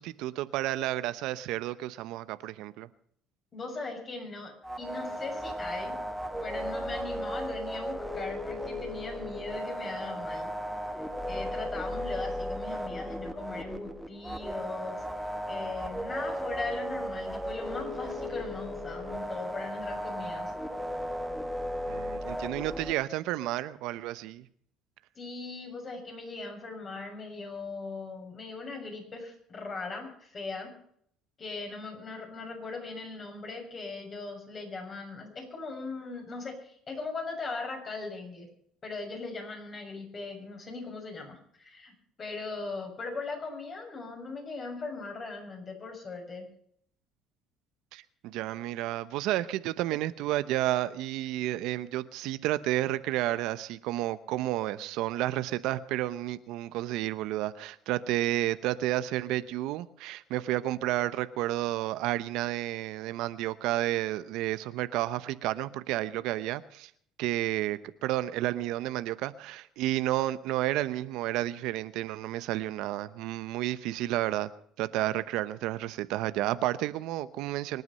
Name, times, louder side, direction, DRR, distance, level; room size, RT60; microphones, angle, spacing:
voice 1, 0.0-2.9 21.9-24.4 47.9-66.9 67.2-74.5 74.8-77.8, right 15 dB, 75° right, 0.8 m, -31 dB
voice 2, 3.5-5.9 6.4-10.5 11.3-15.0 15.5-20.5 25.1-30.7 31.4-38.5 38.8-41.9 42.2-46.5, left 3 dB, 35° left, 6.8 m, -39 dB
sound 1, 4.6-22.9, equal, ahead, 2.1 m, -35 dB
24.5 x 9.5 x 5.6 m
cardioid pair, 100°, 0 cm